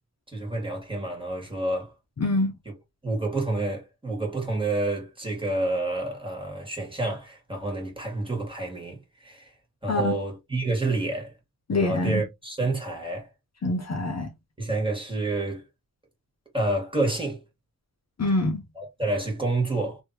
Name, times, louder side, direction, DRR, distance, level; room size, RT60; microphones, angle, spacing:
voice 1, 0.3-1.9 3.0-9.4 9.8-11.3 11.8-13.3 14.6-15.6 16.5-17.4 18.8-20.0, right 2 dB, 15° right, 1.7 m, -28 dB
voice 2, 2.2-2.5 9.9-10.2 11.7-12.2 13.6-14.3 18.2-18.6, left 2 dB, 45° left, 0.8 m, -25 dB
3.2 x 2.6 x 2.8 m
wide cardioid pair, 105°, 37 cm